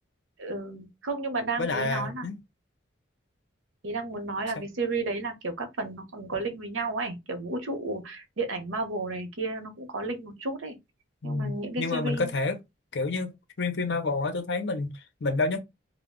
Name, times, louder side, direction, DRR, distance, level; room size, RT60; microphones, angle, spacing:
voice 1, 0.4-2.3 3.8-10.8 11.2-12.3, right 2 dB, 90° right, 0.7 m, -32 dB
voice 2, 1.6-2.4 11.2-12.6 12.9-15.6, left 3 dB, 65° left, 0.6 m, -29 dB
2.3 x 2.1 x 3.5 m
head